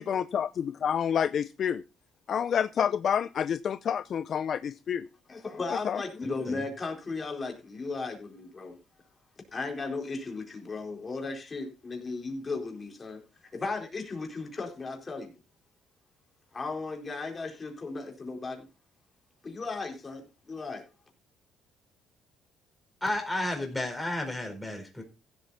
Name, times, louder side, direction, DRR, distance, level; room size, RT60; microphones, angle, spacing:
voice 1, 0.0-1.8 2.3-5.1 5.8-6.0, left 8 dB, 50° left, 0.5 m, -28 dB
voice 2, 5.3-8.8 9.5-13.2 13.5-15.3 16.5-18.7 19.4-20.8, left 3 dB, 25° left, 4.1 m, -36 dB
voice 3, 6.2-6.6 23.0-25.0, left 1 dB, 5° left, 4.5 m, -32 dB
15.5 x 8.0 x 4.1 m
cardioid pair, 120°, 0 cm